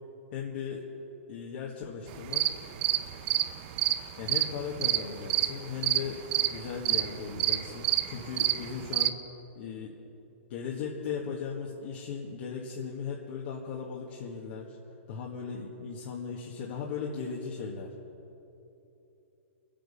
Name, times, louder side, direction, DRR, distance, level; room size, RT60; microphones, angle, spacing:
voice 1, 0.3-0.8 1.3-2.6 4.2-6.2 6.5-9.2 9.6-9.9 10.5-14.8 15.1-17.9, left 6 dB, 50° left, -2 dB, 1.7 m, -37 dB
sound 1, 2.1-9.1, right 14 dB, 45° right, 0.7 m, -28 dB
25.0 x 9.3 x 5.6 m, 3.0 s
hypercardioid pair, 140°, 7 cm